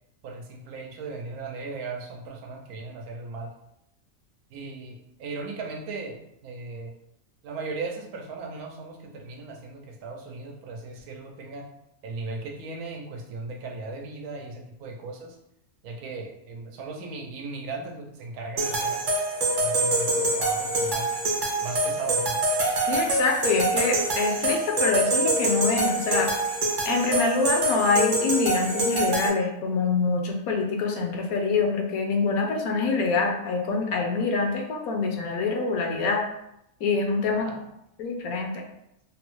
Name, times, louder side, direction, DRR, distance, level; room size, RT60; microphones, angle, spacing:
voice 1, 0.2-3.5 4.5-6.9 7.4-11.7 12.0-15.4 15.8-19.0 19.6-21.1 21.6-22.4 37.4-37.6, right 3 dB, 85° right, 1 dB, 1.1 m, -37 dB
sound 1, 18.6-29.3, right 2 dB, 50° right, 0.6 m, -25 dB
voice 2, 22.9-26.3 26.8-36.2 36.8-37.5 38.0-38.6, left 4 dB, 75° left, 2 dB, 1.0 m, -25 dB
3.6 x 2.0 x 3.0 m, 0.82 s
omnidirectional pair, 1.6 m